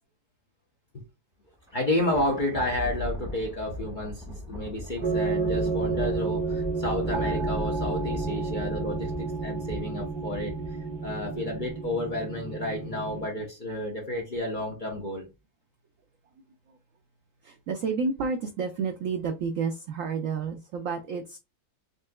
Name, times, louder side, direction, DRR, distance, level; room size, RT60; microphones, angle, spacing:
Thunder, 1.5-12.3, left 1 dB, 5° right, 1.1 m, -38 dB
voice 1, 1.7-10.6 11.0-15.2, left 1 dB, 40° left, 0.7 m, -31 dB
sound 1, 5.0-13.3, right 4 dB, 40° right, 0.7 m, -31 dB
voice 2, 17.4-21.4, right 5 dB, 80° right, 0.7 m, -30 dB
4.2 x 3.7 x 2.2 m
omnidirectional pair, 2.0 m